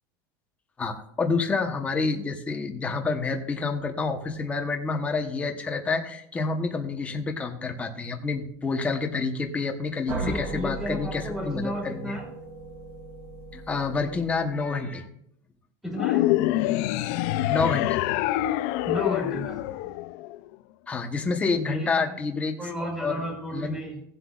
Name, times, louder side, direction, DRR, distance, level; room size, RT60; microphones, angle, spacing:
voice 1, 0.8-12.1 13.5-15.1 17.4-18.0 20.9-22.6 23.0-23.2 23.5-23.8, left 4 dB, 15° left, 4 dB, 1.0 m, -28 dB
sound 1, 10.1-14.8, right 3 dB, 20° right, 2.4 m, -38 dB
voice 2, 10.2-12.2 15.8-16.2 18.8-19.6 21.7-22.0 22.6-24.0, equal, ahead, -3 dB, 3.0 m, -33 dB
sound 2, 16.0-20.5, left 15 dB, 60° left, 0.5 m, -26 dB
17.5 x 7.6 x 2.5 m, 0.74 s
supercardioid pair, 165°, 10 cm